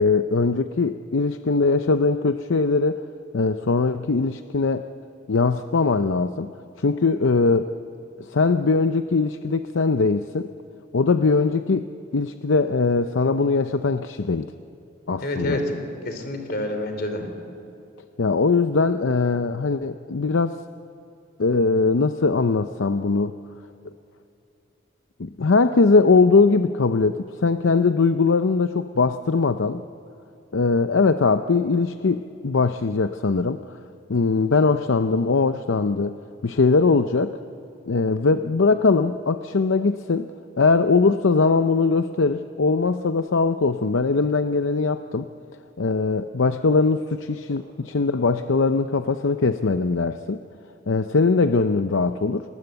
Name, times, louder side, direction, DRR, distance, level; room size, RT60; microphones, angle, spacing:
voice 1, 0.0-3.0 3.3-4.8 5.3-6.5 6.8-7.7 8.3-10.5 10.9-11.9 12.1-14.5 15.1-15.6 18.2-20.6 21.4-23.3 25.2-29.8 30.5-33.6 34.1-36.2 36.4-37.3 37.9-40.3 40.6-45.3 45.8-50.4 50.9-52.4, left 4 dB, 70° left, 9 dB, 0.6 m, -21 dB
voice 2, 15.2-17.3, left 1 dB, 50° left, 6 dB, 3.4 m, -28 dB
28.5 x 20.0 x 8.0 m, 2.7 s
head